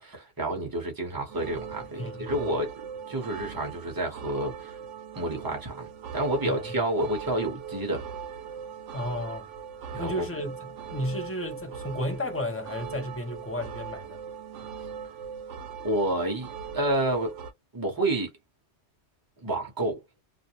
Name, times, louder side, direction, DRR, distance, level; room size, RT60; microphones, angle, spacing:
voice 1, 0.0-2.7 3.1-4.8 5.2-8.0 9.9-10.3 15.8-16.5 16.7-17.3 17.7-18.3 19.4-20.0, right 1 dB, 20° right, 0.9 m, -29 dB
sound 1, 1.3-17.5, right 7 dB, 80° right, 0.9 m, -40 dB
voice 2, 2.0-2.6 6.4-6.8 8.9-9.5 10.0-14.2, left 1 dB, 15° left, 0.5 m, -33 dB
2.5 x 2.0 x 2.8 m
omnidirectional pair, 1.2 m